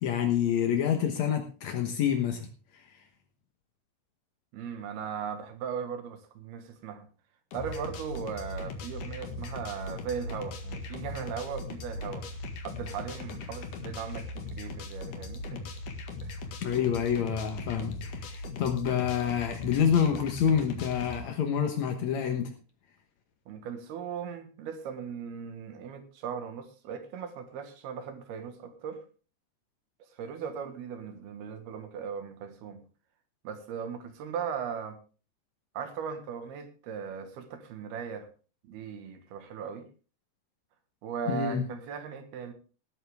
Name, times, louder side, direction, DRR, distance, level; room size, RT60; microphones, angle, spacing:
voice 1, 0.0-2.5 16.6-22.5 41.3-41.7, left 8 dB, 75° left, 5 dB, 1.6 m, -27 dB
voice 2, 4.5-7.1 7.5-12.3 12.6-15.7 16.2-16.4 23.5-29.0 30.1-32.9 33.4-35.0 35.7-38.3 38.6-39.9 41.0-42.5, right 7 dB, 65° right, 8 dB, 3.3 m, -38 dB
sound 1, 7.5-21.2, left 2 dB, 55° left, 2.8 m, -39 dB
18.5 x 9.6 x 3.5 m, 0.35 s
omnidirectional pair, 5.1 m